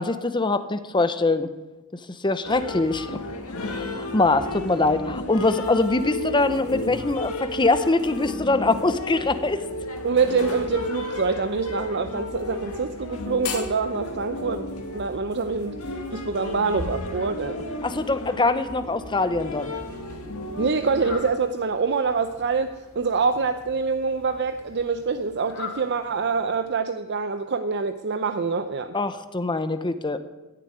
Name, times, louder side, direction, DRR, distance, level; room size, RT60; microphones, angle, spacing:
voice 1, 0.0-1.5 2.2-3.2 3.6-9.6 17.8-19.7 28.9-30.2, left 3 dB, 20° left, 11 dB, 0.8 m, -23 dB
sound 1, 2.4-21.3, left 1 dB, 80° left, 2.2 m, -33 dB
voice 2, 10.0-14.6 14.9-15.8 16.1-17.8 20.6-29.0, right 4 dB, 50° right, 9 dB, 0.6 m, -25 dB
Fowl, 19.5-26.9, left 3 dB, 65° left, 4.0 m, -44 dB
16.0 x 7.2 x 9.9 m, 1.0 s
head